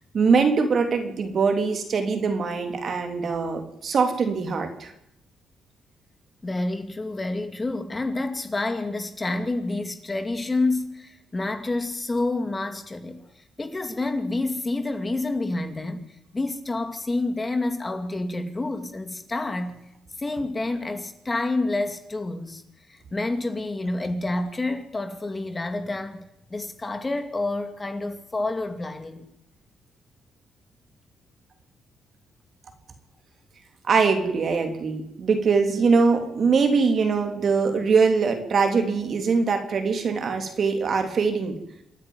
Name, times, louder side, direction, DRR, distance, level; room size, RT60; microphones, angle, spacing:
voice 1, 0.1-4.9 33.9-41.6, right 5 dB, 50° right, 3.3 m, -22 dB
voice 2, 6.4-13.2 13.6-16.0 16.3-19.8 20.2-22.6 22.9-26.2 26.5-29.2, left 2 dB, 20° left, 2.5 m, -28 dB
27.5 x 9.9 x 9.7 m
cardioid pair, 90°, 0 cm